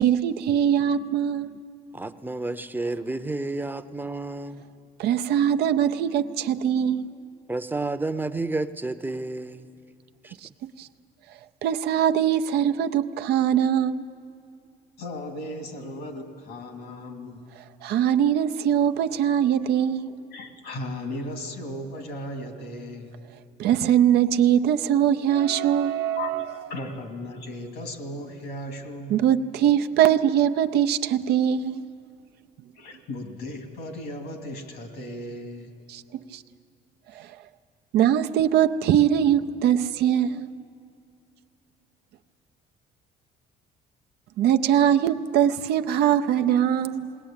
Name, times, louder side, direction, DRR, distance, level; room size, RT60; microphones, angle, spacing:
voice 1, 0.0-1.6 5.0-7.1 10.4-10.9 11.6-14.0 17.8-20.1 23.6-26.6 29.1-31.8 35.9-36.0 36.3-36.4 37.1-37.4 37.9-40.5 44.4-47.1, right 10 dB, 75° right, 0.6 m, -22 dB
voice 2, 1.9-4.6 7.5-9.7 10.2-10.3, right 2 dB, 10° right, 0.7 m, -30 dB
voice 3, 15.0-17.5 20.3-23.2 25.8-29.1 32.7-35.7, left 1 dB, 85° left, 2.6 m, -36 dB
19.5 x 19.0 x 8.9 m
cardioid pair, 110°, 17 cm